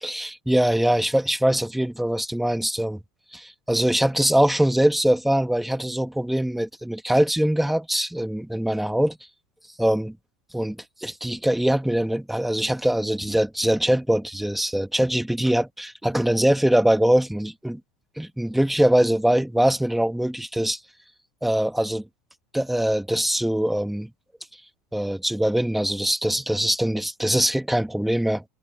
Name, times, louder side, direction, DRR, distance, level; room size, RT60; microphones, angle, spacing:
voice 1, 0.0-3.0 3.3-9.2 9.8-10.2 10.5-17.8 18.2-20.8 21.4-22.0 22.5-24.1 24.9-28.4, right 1 dB, ahead, 1.6 m, -22 dB
supercardioid pair, 125°, 6 cm